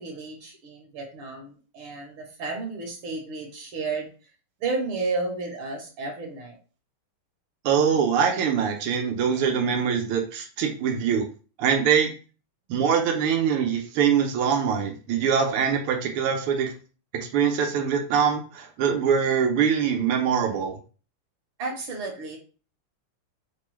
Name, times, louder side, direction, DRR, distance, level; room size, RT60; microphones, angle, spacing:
voice 1, 0.0-4.1 4.6-6.5 21.6-22.4, right 3 dB, 70° right, 2 dB, 1.7 m, -32 dB
voice 2, 7.6-11.3 11.6-12.1 12.7-16.7 17.3-20.8, right 7 dB, 85° right, 2 dB, 1.7 m, -23 dB
5.4 x 2.3 x 3.1 m, 0.36 s
omnidirectional pair, 2.4 m